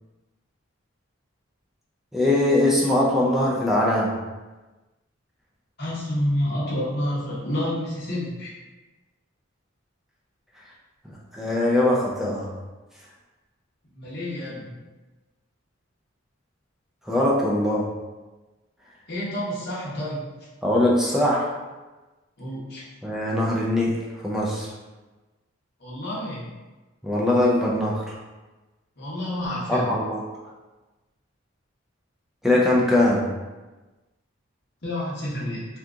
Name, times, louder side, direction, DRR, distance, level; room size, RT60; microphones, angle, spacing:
voice 1, 2.1-4.1 11.3-12.5 17.1-17.9 20.6-21.5 23.0-24.7 27.0-28.2 29.7-30.2 32.4-33.3, left 1 dB, ahead, -5 dB, 0.4 m, -21 dB
voice 2, 5.8-8.5 13.9-14.7 19.1-20.3 22.4-22.8 25.8-26.4 29.0-30.0 34.8-35.7, left 1 dB, 50° left, -8 dB, 0.8 m, -29 dB
2.7 x 2.4 x 3.5 m, 1.2 s
head